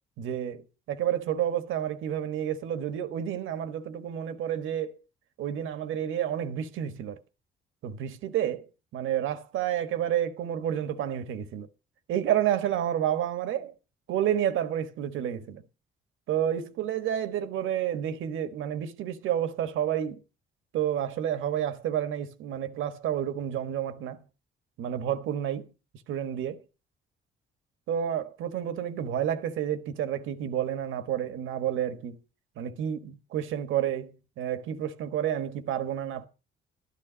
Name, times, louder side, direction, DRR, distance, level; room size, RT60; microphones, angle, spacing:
voice 1, 0.2-5.0 5.4-7.2 7.8-11.7 12.1-13.7 14.1-15.6 16.3-20.2 20.7-24.3 24.8-25.7 26.1-26.6 27.9-32.2 32.6-36.3, right 10 dB, 85° right, 1.4 m, -30 dB
12.0 x 12.0 x 5.1 m
cardioid pair, 90°, 20 cm